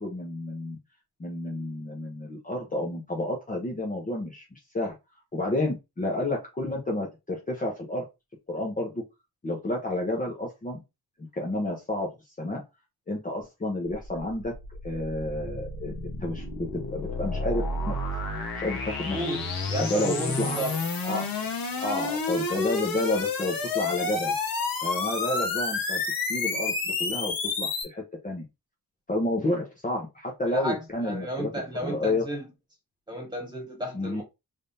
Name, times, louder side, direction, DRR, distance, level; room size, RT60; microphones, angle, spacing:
voice 1, 0.0-0.8 1.2-5.0 5.3-8.1 8.5-9.0 9.4-10.8 11.4-12.6 13.1-14.5 14.8-18.0 18.5-19.2 19.8-20.6 21.0-21.3 21.8-24.3 24.8-26.0 26.3-28.4 29.1-31.5 31.8-32.3 33.9-34.2, left 1 dB, 20° left, 0.9 m, -30 dB
sound 1, 13.9-27.8, left 3 dB, 65° left, 1.3 m, -30 dB
voice 2, 19.1-20.8 30.5-32.4 33.1-34.2, right 1 dB, 10° right, 1.6 m, -33 dB
3.6 x 3.5 x 2.7 m
wide cardioid pair, 150°, 37 cm